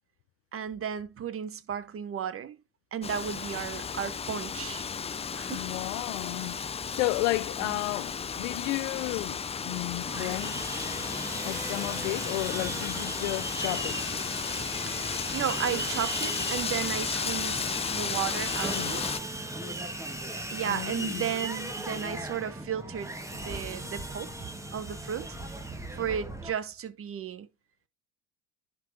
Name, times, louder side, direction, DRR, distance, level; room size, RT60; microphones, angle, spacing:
voice 1, 0.5-2.6 2.9-4.9 5.3-5.7 7.6-7.8 14.8-19.1 20.5-24.3 24.7-25.4 25.9-27.5, right 8 dB, 40° right, 1.1 m, -34 dB
Wind, 3.0-19.2, left 6 dB, 15° left, 0.5 m, -34 dB
voice 2, 5.5-6.6 7.0-10.7 11.4-14.1 18.7-18.9 20.7-21.3, left 23 dB, 75° left, 0.5 m, -33 dB
Sawing, 10.1-26.5, right 1 dB, 10° right, 1.6 m, -37 dB
10.5 x 4.8 x 2.7 m
hypercardioid pair, 80°, 36 cm